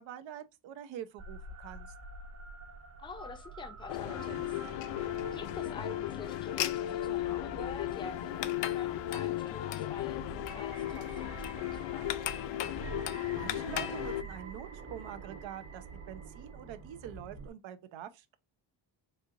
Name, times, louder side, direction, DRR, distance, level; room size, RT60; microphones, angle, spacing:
voice 1, 0.0-1.9 13.3-18.4, right 10 dB, 90° right, 0.7 m, -45 dB
sound 1, 1.2-17.5, right 4 dB, 35° right, 0.8 m, -47 dB
voice 2, 3.0-4.8 5.3-12.2, left 4 dB, 10° left, 0.4 m, -47 dB
sound 2, 3.9-14.2, left 13 dB, 75° left, 0.5 m, -35 dB
4.2 x 2.8 x 2.4 m
cardioid pair, 140°, 44 cm